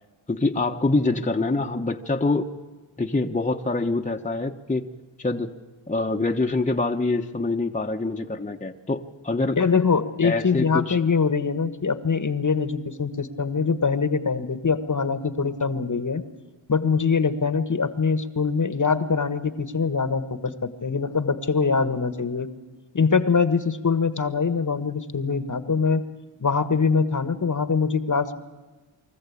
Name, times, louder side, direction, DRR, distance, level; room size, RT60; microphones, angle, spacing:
voice 1, 0.3-2.5 3.0-4.9 5.2-5.5 5.9-9.6 10.2-11.0, left 2 dB, 15° left, 3 dB, 1.2 m, -25 dB
voice 2, 9.6-16.2 16.7-22.5 22.9-26.1 26.4-28.3, left 5 dB, 35° left, 11 dB, 1.4 m, -23 dB
24.0 x 14.0 x 8.5 m, 1.2 s
cardioid pair, 45°, 49 cm